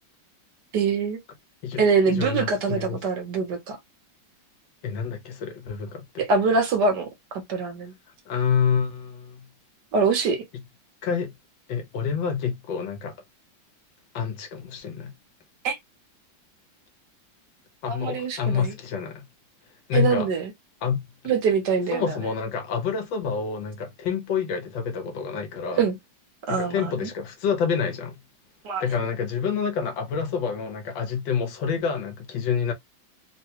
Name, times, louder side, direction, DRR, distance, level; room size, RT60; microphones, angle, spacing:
voice 1, 0.7-1.2 1.8-3.8 6.2-7.1 7.5-7.9 9.9-10.4 15.6-15.8 17.9-18.7 19.9-20.5 21.2-22.2 25.8-26.0 26.5-27.1 28.6-28.8, right 5 dB, 65° right, 1.4 m, -24 dB
voice 2, 2.1-3.0 4.8-6.2 8.3-9.4 11.0-11.3 11.7-13.1 14.1-15.1 17.8-19.2 19.9-20.3 20.8-21.0 21.9-25.8 26.5-28.2 28.8-32.7, left 6 dB, 75° left, 1.5 m, -27 dB
3.7 x 2.2 x 2.9 m
omnidirectional pair, 2.1 m